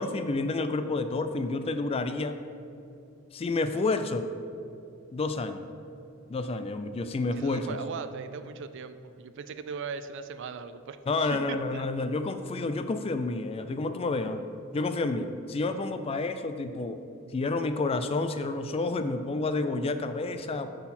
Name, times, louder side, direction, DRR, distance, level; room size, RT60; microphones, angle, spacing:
voice 1, 0.0-2.4 3.3-4.3 5.1-5.6 6.3-7.8 11.1-14.4 14.7-17.0 17.3-20.7, left 3 dB, 30° left, 9 dB, 0.3 m, -29 dB
voice 2, 7.4-11.9, right 5 dB, 60° right, 11 dB, 0.4 m, -39 dB
9.9 x 3.9 x 4.3 m, 2.5 s
head